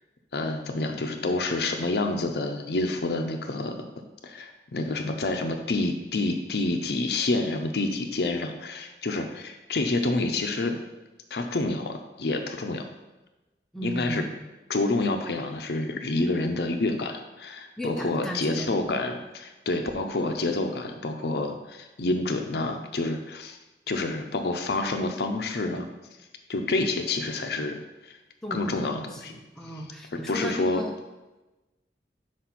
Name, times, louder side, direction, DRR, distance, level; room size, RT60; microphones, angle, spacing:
voice 1, 0.3-3.8 4.2-10.8 11.3-12.8 13.8-14.2 14.7-23.6 23.9-25.9 26.5-28.2 28.5-29.3 30.3-30.8, left 2 dB, 65° left, 5 dB, 0.6 m, -28 dB
voice 2, 13.7-14.4 17.8-18.7 26.7-26.8 28.4-30.9, equal, 5° left, 0 dB, 0.6 m, -36 dB
5.1 x 4.2 x 5.8 m, 1.1 s
head